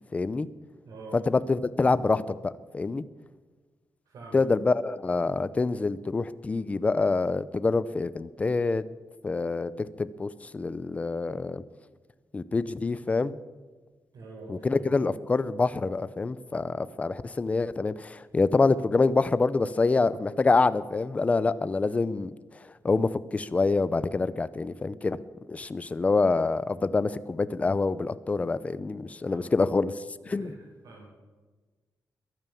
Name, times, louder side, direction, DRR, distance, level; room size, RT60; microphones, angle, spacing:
voice 1, 0.1-0.5 1.1-3.0 4.3-8.8 9.2-11.6 12.3-13.4 14.5-22.3 22.8-25.2 25.5-29.9 30.3-30.5, left 3 dB, 20° left, 16 dB, 0.5 m, -26 dB
voice 2, 0.8-1.2 4.0-4.4 14.1-14.8 29.2-29.7 30.3-31.1, right 3 dB, 80° right, -5 dB, 5.1 m, -46 dB
22.0 x 9.1 x 7.0 m, 1.3 s
wide cardioid pair, 175°, 6 cm